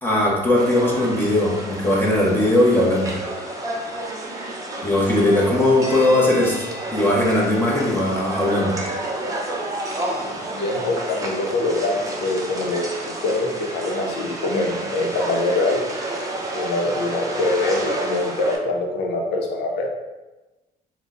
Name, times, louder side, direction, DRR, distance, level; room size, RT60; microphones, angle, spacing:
voice 1, 0.0-3.2 4.8-6.5 6.9-8.8, left 1 dB, 10° left, -4 dB, 0.9 m, -19 dB
sound 1, 0.6-18.6, right 1 dB, 20° right, 0.6 m, -30 dB
voice 2, 10.4-15.8 16.5-19.9, left 2 dB, 85° left, 1 dB, 0.7 m, -24 dB
3.7 x 2.2 x 3.6 m, 1.1 s
cardioid pair, 110°, 17 cm